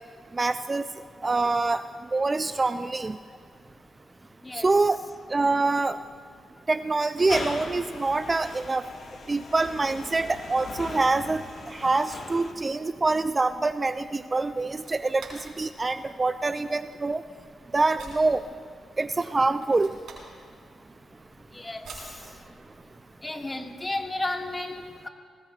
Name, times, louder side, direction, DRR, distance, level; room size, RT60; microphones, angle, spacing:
voice 1, 0.4-0.8 1.2-1.8 2.1-3.2 4.5-5.0 5.3-6.0 6.7-8.8 9.3-11.4 11.7-15.3 15.6-17.2 17.7-18.4 19.0-19.9, right 3 dB, 30° right, 12 dB, 0.4 m, -25 dB
sound 1, 7.2-12.5, left 4 dB, 65° left, 1.7 m, -39 dB
sound 2, 13.8-23.1, right 3 dB, 80° right, 4.3 m, -50 dB
voice 2, 21.5-22.2 23.2-25.1, left 2 dB, 25° left, 3 dB, 1.8 m, -33 dB
26.5 x 19.0 x 2.4 m, 2.1 s
cardioid pair, 60°, 0 cm